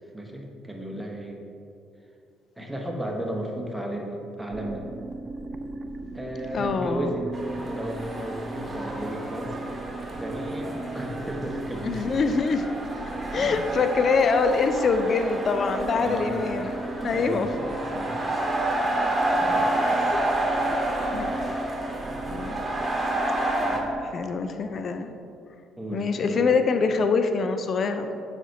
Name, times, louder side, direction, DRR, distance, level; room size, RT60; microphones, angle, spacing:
voice 1, 0.1-1.4 2.6-4.9 6.1-7.2 7.6-9.8 10.2-12.0 13.3-13.6 16.0-16.3 17.0-17.6 17.9-18.2 19.3-20.0 20.4-20.6 22.0-22.5 22.8-23.0 23.6-23.8 25.8-26.6, right 1 dB, 5° right, -1 dB, 1.1 m, -34 dB
sound 1, 4.5-24.1, right 2 dB, 45° right, 0.3 m, -37 dB
voice 2, 6.5-7.1 11.8-12.9 13.3-16.8 17.0-17.5 19.8-20.2 20.7-20.8 21.1-21.3 22.3-22.7 24.0-25.1 25.9-28.2, left 4 dB, 50° left, 7 dB, 0.4 m, -25 dB
sound 2, 7.3-23.8, right 1 dB, 30° right, 1.3 m, -30 dB
7.3 x 5.1 x 2.7 m, 2.6 s
hypercardioid pair, 50°, 0 cm